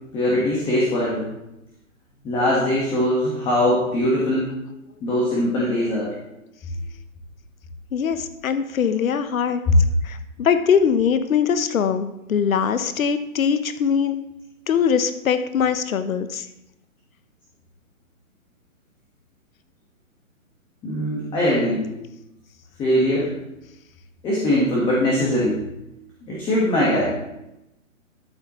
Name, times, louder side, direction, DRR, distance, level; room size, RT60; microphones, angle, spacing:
voice 1, 0.1-1.3 2.2-4.5 5.0-6.1 20.8-21.9 22.8-23.3 24.2-25.6 26.3-27.1, left 1 dB, 10° left, -5 dB, 1.3 m, -21 dB
voice 2, 7.9-9.6 10.0-14.2 14.7-16.5, left 7 dB, 75° left, 10 dB, 0.9 m, -22 dB
12.5 x 6.9 x 3.0 m, 0.89 s
hypercardioid pair, 155°, 41 cm